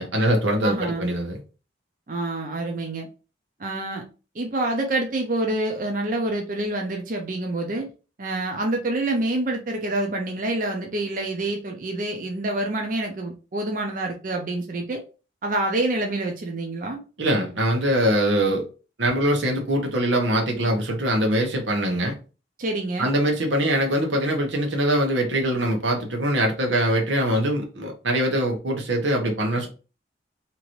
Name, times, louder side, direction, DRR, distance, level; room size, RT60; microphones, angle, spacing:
voice 1, 0.0-1.4 17.2-18.6 19.0-22.2 23.0-29.7, right 1 dB, 90° right, 1.0 m, -23 dB
voice 2, 0.6-1.1 2.1-3.1 3.6-4.1 4.3-7.9 8.2-15.0 15.4-17.0 22.6-23.2, right 2 dB, 45° right, 0.5 m, -27 dB
2.9 x 2.6 x 3.0 m
head